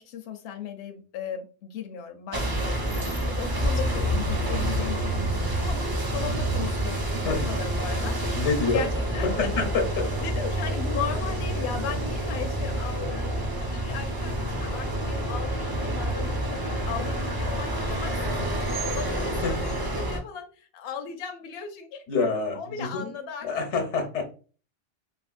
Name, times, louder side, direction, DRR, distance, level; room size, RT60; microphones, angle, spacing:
voice 1, 0.0-8.4 8.7-8.9 9.1-9.7 10.2-22.3 22.5-23.5, left 7 dB, 70° left, 4 dB, 0.8 m, -37 dB
sound 1, 2.3-20.2, right 1 dB, 30° right, 0.4 m, -28 dB
voice 2, 3.5-4.0 7.2-7.5 8.3-8.8 9.2-10.1 19.4-20.0 22.1-23.1 23.4-24.2, left 4 dB, 90° left, 4 dB, 1.1 m, -28 dB
3.4 x 2.4 x 2.4 m, 0.37 s
omnidirectional pair, 1.2 m